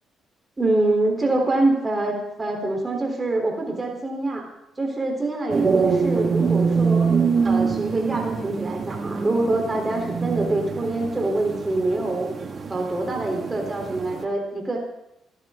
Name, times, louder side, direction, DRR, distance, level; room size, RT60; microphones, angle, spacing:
voice 1, 0.6-4.4 4.8-7.1 7.4-12.3 12.7-14.8, right 2 dB, 25° right, 1 dB, 3.7 m, -25 dB
sound 1, 5.5-14.2, right 5 dB, 45° right, 1.9 m, -25 dB
22.0 x 14.5 x 3.8 m, 0.84 s
cardioid pair, 90°, 0 cm